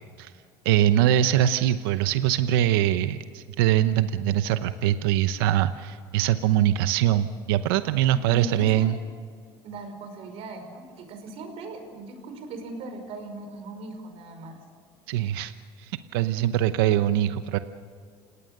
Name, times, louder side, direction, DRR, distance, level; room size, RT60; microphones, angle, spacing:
voice 1, 0.6-9.0 15.1-15.5 16.1-17.6, right 12 dB, 85° right, 11 dB, 0.9 m, -22 dB
voice 2, 8.0-8.9 9.6-14.6, right 2 dB, 60° right, 6 dB, 5.2 m, -39 dB
29.0 x 18.0 x 6.7 m, 2.1 s
supercardioid pair, 110°, 12 cm